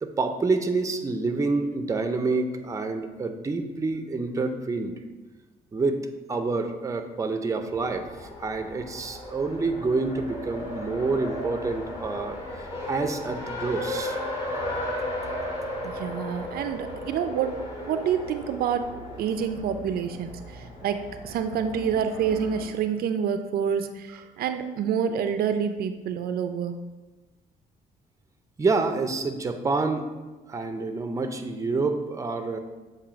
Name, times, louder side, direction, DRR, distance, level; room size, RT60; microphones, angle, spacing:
voice 1, 0.0-4.9 5.7-6.0 6.3-12.4 12.9-14.2 28.6-30.1 30.5-32.6, right 3 dB, 20° right, 7 dB, 0.5 m, -27 dB
Race car auto racing, 7.7-22.6, left 1 dB, 30° left, 2.0 m, -36 dB
voice 2, 15.8-18.9 19.2-26.7, right 7 dB, 70° right, 9 dB, 0.4 m, -28 dB
7.1 x 2.7 x 5.0 m, 1.2 s
cardioid pair, 110°, 16 cm